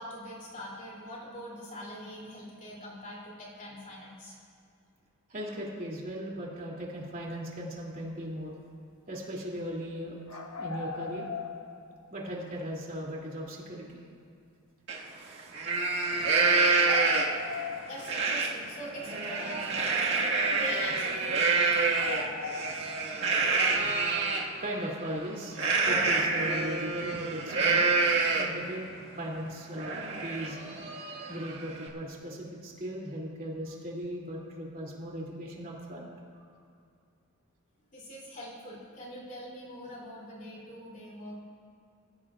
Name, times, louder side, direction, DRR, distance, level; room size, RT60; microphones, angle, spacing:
voice 1, 0.0-4.3 17.9-20.3 20.6-21.6 37.9-41.4, equal, 40° left, -4 dB, 3.1 m, -43 dB
voice 2, 5.3-8.5 9.1-11.3 12.1-13.9 24.6-25.6 25.8-27.9 28.4-28.9 29.2-30.7 31.3-36.1 36.3-36.4, equal, 40° right, -3 dB, 2.9 m, -37 dB
sound 1, 10.3-12.3 12.6-12.7 16.6-18.5 18.9-19.0 20.0-20.1 20.5-20.6 21.1-21.3 21.7-23.6, left 4 dB, 70° left, 1.0 m, -39 dB
Livestock farm animals working animals, 14.9-15.0 15.4-17.5 18.0-18.5 18.9-24.4 25.5-28.6 29.1-29.2 29.5-31.9, right 4 dB, 60° right, 1.8 m, -27 dB
23.0 x 15.5 x 2.5 m, 2.4 s
head